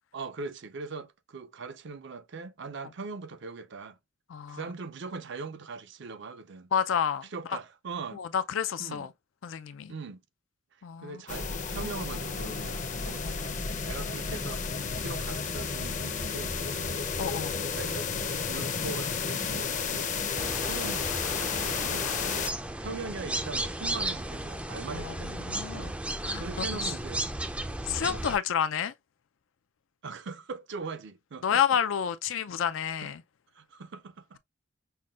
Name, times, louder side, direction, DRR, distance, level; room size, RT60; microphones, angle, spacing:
voice 1, 0.1-4.0 4.5-6.7 7.3-8.2 8.8-9.1 9.9-10.2 11.0-17.1 17.6-18.1 18.5-22.1 22.8-25.9 26.3-27.3 28.1-28.2 30.0-31.6 33.5-34.4, right 4 dB, 65° right, 0.5 m, -41 dB
voice 2, 4.3-4.7 6.7-7.6 8.1-9.1 9.4-9.9 10.8-11.2 13.2-13.4 14.0-14.2 17.2-17.6 24.9-25.9 26.2-26.4 26.8-26.9 27.8-28.9 31.4-33.2, left 8 dB, 90° left, 0.4 m, -30 dB
sound 1, 11.3-22.5, left 5 dB, 40° left, 0.6 m, -32 dB
sound 2, 20.4-28.4, right 1 dB, 5° right, 0.3 m, -34 dB
5.6 x 2.2 x 2.3 m
head